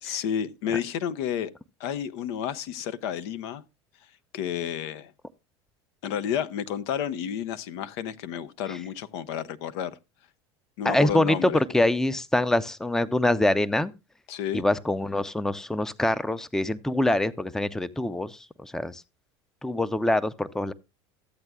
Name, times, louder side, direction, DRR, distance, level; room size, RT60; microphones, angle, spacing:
voice 1, 0.0-1.5 1.8-3.6 4.3-5.1 6.0-10.0 10.8-11.6 14.3-14.6, left 9 dB, 75° left, 0.6 m, -31 dB
voice 2, 10.8-13.9 14.5-19.0 19.6-20.7, left 1 dB, 5° left, 0.5 m, -25 dB
13.5 x 8.0 x 2.3 m
supercardioid pair, 95°, 14 cm